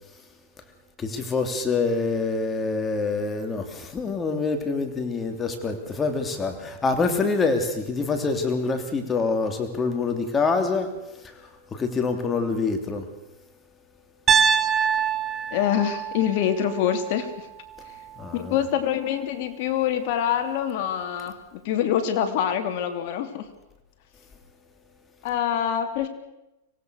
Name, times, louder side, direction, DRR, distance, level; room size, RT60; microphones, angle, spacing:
voice 1, 1.0-13.1 18.2-18.6, left 4 dB, 15° left, 6 dB, 3.1 m, -26 dB
Piano, 14.3-18.3, right 7 dB, 25° right, 0.9 m, -25 dB
voice 2, 15.5-17.5 18.3-23.5 25.2-26.1, left 9 dB, 55° left, 7 dB, 2.9 m, -25 dB
25.0 x 18.0 x 6.5 m, 0.94 s
hypercardioid pair, 135°, 0 cm